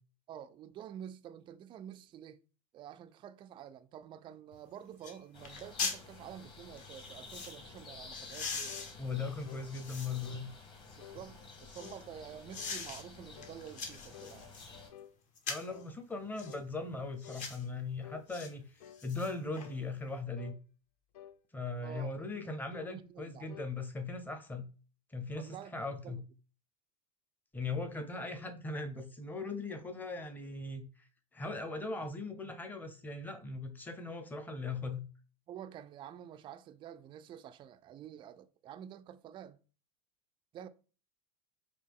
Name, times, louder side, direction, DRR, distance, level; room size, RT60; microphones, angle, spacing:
voice 1, 0.3-2.4 2.7-8.8 11.0-14.5 21.8-22.1 22.8-23.6 25.3-26.2 35.5-39.6 40.5-40.7, right 9 dB, 25° right, 0.3 m, -49 dB
sound 1, 4.5-4.6 5.0-5.2 5.4-6.0 6.8-7.6 8.1-10.4 10.9-12.0 12.5-13.0 13.4-14.7 15.4-15.8 16.4-16.6 17.2-17.6 18.3-18.5 18.8-19.7 20.0-20.1, left 5 dB, 40° left, 1.1 m, -42 dB
sound 2, 5.3-14.9, left 4 dB, 25° left, 1.3 m, -52 dB
sound 3, 8.7-8.9 9.4-9.7 10.2-10.5 11.0-11.2 11.8-12.0 12.6-12.8 13.3-13.6 14.1-15.2 15.7-15.9 16.4-16.7 17.2-17.5 18.0-18.3 18.8-19.1 19.6-19.8 20.4-20.6 21.1-21.4 21.9-22.2 22.7-22.9 23.5-23.7, left 10 dB, 75° left, 0.4 m, -52 dB
voice 2, 9.0-10.5 15.5-18.6 19.0-20.5 21.5-24.6 25.1-26.2 27.5-31.1 31.3-35.1, left 3 dB, 10° left, 0.8 m, -39 dB
4.2 x 2.8 x 3.5 m
hypercardioid pair, 110°, 19 cm